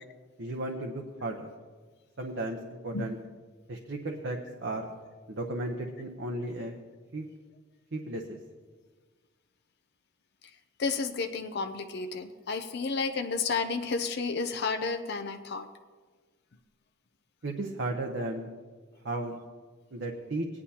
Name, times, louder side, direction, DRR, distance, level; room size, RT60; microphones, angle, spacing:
voice 1, 0.4-1.5 2.2-3.2 3.7-4.9 5.3-6.8 7.1-7.2 7.9-8.4 17.4-18.5 19.0-19.3 19.9-20.5, right 2 dB, 65° right, 2 dB, 0.8 m, -34 dB
voice 2, 10.8-15.7, left 4 dB, 55° left, 7 dB, 0.5 m, -31 dB
18.0 x 9.8 x 2.8 m, 1.4 s
head